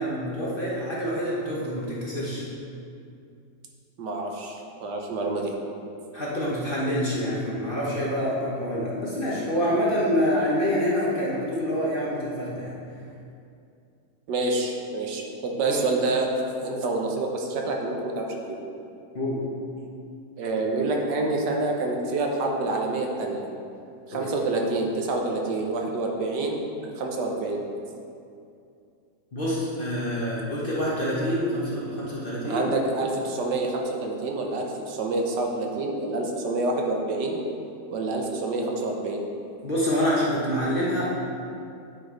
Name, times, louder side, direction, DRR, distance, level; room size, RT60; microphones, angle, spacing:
voice 1, 0.0-2.4 6.1-12.7 15.7-15.8 19.1-19.4 24.1-24.3 29.3-32.7 39.6-41.1, equal, 35° left, -6 dB, 1.1 m, -26 dB
voice 2, 4.0-5.5 14.3-16.3 16.6-18.6 20.4-23.4 24.1-26.6 27.0-27.6 32.5-37.4 37.9-39.2, right 2 dB, 75° right, 0 dB, 1.5 m, -27 dB
9.3 x 5.2 x 3.8 m, 2.5 s
omnidirectional pair, 1.9 m